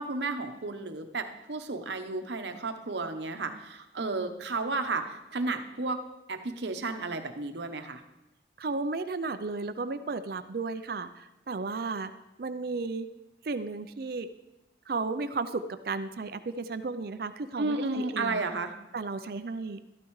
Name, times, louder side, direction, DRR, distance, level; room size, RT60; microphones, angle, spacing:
voice 1, 0.0-6.0 6.3-8.0 17.6-18.7, right 3 dB, 75° right, 7 dB, 0.9 m, -33 dB
voice 2, 8.6-12.1 12.4-13.1 13.4-14.3 14.9-18.4 18.9-19.8, right 3 dB, 55° right, 11 dB, 0.5 m, -34 dB
13.5 x 12.0 x 3.2 m, 0.96 s
head